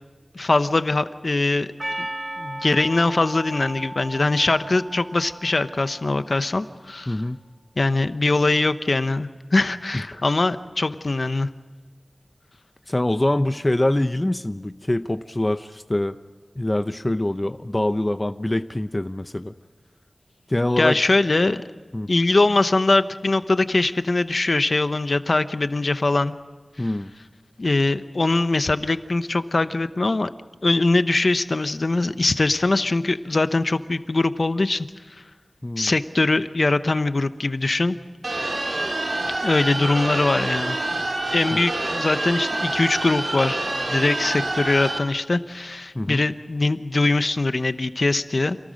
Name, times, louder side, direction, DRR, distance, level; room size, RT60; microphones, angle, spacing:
voice 1, 0.3-1.7 2.4-7.2 7.8-11.5 20.8-21.6 22.1-26.4 26.8-26.9 27.6-30.3 30.6-34.9 35.8-38.0 39.4-40.8 41.3-43.6 43.9-48.6, left 2 dB, 55° left, 11 dB, 0.9 m, -22 dB
Percussion, 1.8-6.3, right 1 dB, 30° right, 1.9 m, -35 dB
voice 2, 7.1-7.4 9.9-10.2 12.9-16.2 16.6-19.5 20.5-21.0 21.9-22.1 26.8-27.1 35.6-35.9 41.5-41.6 45.9-46.2, left 1 dB, 25° left, 10 dB, 0.6 m, -24 dB
sound 1, 38.2-45.0, right 2 dB, 60° right, 2.8 m, -27 dB
27.5 x 18.5 x 6.4 m, 1.3 s
wide cardioid pair, 75°, 0 cm